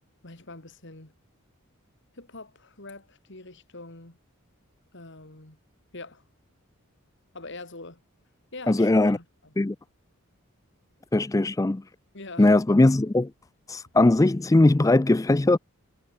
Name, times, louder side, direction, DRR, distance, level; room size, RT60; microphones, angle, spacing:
voice 1, 0.2-1.1 2.1-4.2 4.9-5.6 5.9-6.2 7.3-8.0 8.5-9.5 12.1-12.5, left 2 dB, 55° left, 2.9 m, -44 dB
voice 2, 8.7-9.2 9.6-9.8 11.1-11.8 12.4-13.3 13.7-15.6, left 2 dB, 15° left, 0.4 m, -20 dB
head